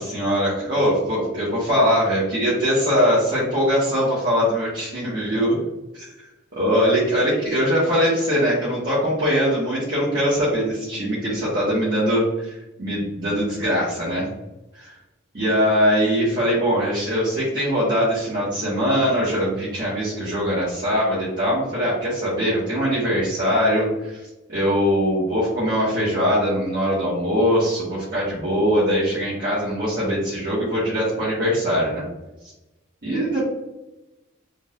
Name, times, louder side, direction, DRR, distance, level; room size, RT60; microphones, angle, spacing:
voice 1, 0.0-5.6 5.9-6.1 6.5-14.2 14.7-14.9 15.3-32.0 33.0-33.5, equal, 45° right, -10 dB, 1.3 m, -22 dB
3.9 x 3.4 x 2.4 m, 1.0 s
head